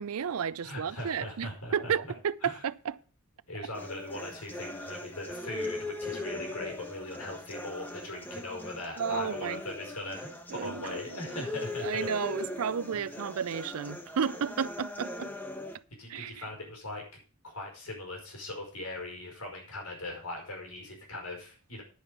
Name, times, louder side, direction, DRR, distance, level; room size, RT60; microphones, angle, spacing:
voice 1, 0.0-3.0 9.0-9.6 10.5-11.0 11.8-15.3 16.1-16.4, right 7 dB, 70° right, 0.5 m, -32 dB
voice 2, 0.6-1.9 2.4-2.6 3.5-12.1 12.9-13.1 16.0-17.0 17.4-21.8, left 2 dB, 85° left, 5.3 m, -40 dB
sound 1, 3.7-15.8, left 2 dB, 10° left, 0.9 m, -40 dB
10.5 x 5.3 x 8.2 m
head